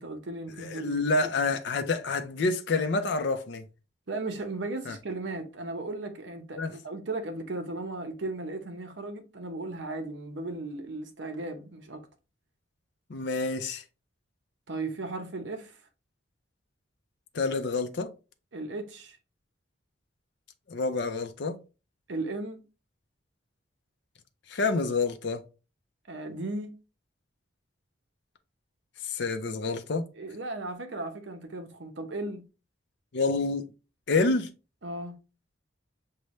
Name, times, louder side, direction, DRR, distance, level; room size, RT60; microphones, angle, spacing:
voice 1, 0.0-1.0 4.1-12.1 14.7-15.8 18.5-19.2 22.1-22.6 26.1-26.7 30.2-32.4 34.8-35.2, right 2 dB, 65° right, 0.8 m, -36 dB
voice 2, 0.6-3.7 4.9-5.0 6.6-6.7 13.1-13.8 17.3-18.1 20.7-21.6 24.5-25.4 29.0-30.0 33.1-33.7 34.1-34.5, left 3 dB, 65° left, 0.6 m, -28 dB
6.6 x 2.2 x 3.1 m
head